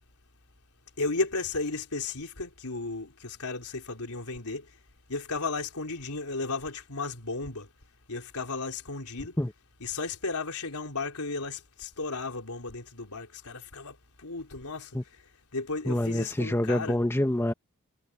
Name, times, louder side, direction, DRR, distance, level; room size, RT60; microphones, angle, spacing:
voice 1, 1.0-4.7 5.1-7.7 8.1-9.3 9.8-14.9 15.5-17.0, left 3 dB, 90° left, 3.5 m, -34 dB
voice 2, 15.9-17.5, left 1 dB, 10° left, 1.0 m, -26 dB
head